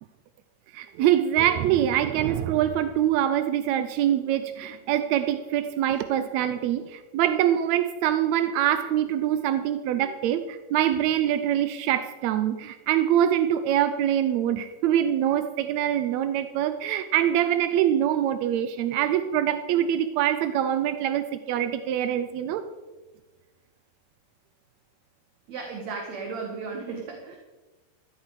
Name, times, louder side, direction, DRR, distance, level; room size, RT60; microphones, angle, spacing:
voice 1, 0.7-22.6, right 11 dB, 80° right, 10 dB, 1.7 m, -24 dB
voice 2, 25.5-27.4, right 4 dB, 60° right, 1 dB, 2.8 m, -35 dB
16.0 x 12.5 x 4.9 m, 1.3 s
omnidirectional pair, 3.7 m